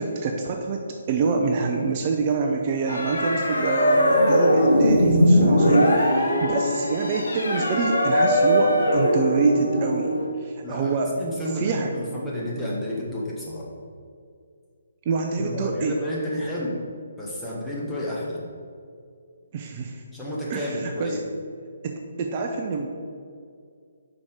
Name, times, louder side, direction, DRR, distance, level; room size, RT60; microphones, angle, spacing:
voice 1, 0.0-11.1 11.6-11.9 15.1-15.9 19.5-20.0 20.5-21.2 21.8-22.9, right 4 dB, 35° right, 3 dB, 0.5 m, -26 dB
sound 1, 2.9-10.3, equal, 70° left, 1.2 m, -20 dB
voice 2, 10.6-13.7 15.4-16.8 17.2-18.4 20.1-21.2, equal, 5° left, -6 dB, 1.3 m, -30 dB
5.3 x 4.6 x 5.2 m, 2.3 s
figure-of-eight pair, 140°, 0 cm